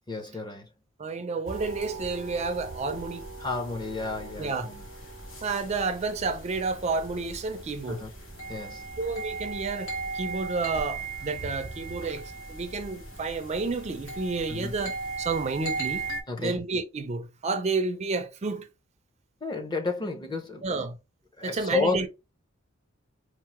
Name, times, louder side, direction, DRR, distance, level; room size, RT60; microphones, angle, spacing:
voice 1, 0.1-0.7 3.4-4.8 7.9-8.1 8.5-8.9 14.5-14.7 16.3-16.6 19.4-20.8 21.4-22.1, left 3 dB, 20° left, 0.7 m, -31 dB
voice 2, 1.0-3.3 4.4-4.7 5.4-8.0 9.0-16.0 16.4-18.7 20.6-21.0 21.4-22.1, right 4 dB, 35° right, 0.4 m, -30 dB
sound 1, 1.5-16.2, right 3 dB, 80° left, 1.2 m, -38 dB
4.5 x 2.1 x 2.9 m
head